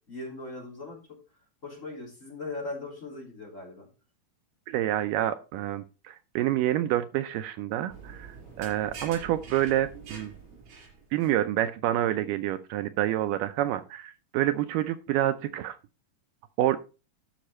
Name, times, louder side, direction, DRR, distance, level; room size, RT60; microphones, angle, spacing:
voice 1, 0.1-1.0 1.6-3.9 9.0-9.2, left 2 dB, 20° left, -2 dB, 3.4 m, -39 dB
voice 2, 4.7-10.3 11.1-15.8 16.6-16.8, right 13 dB, 80° right, 11 dB, 2.1 m, -28 dB
sound 1, 7.9-11.3, right 5 dB, 55° right, 6.1 m, -45 dB
11.5 x 6.4 x 4.2 m, 0.32 s
omnidirectional pair, 4.0 m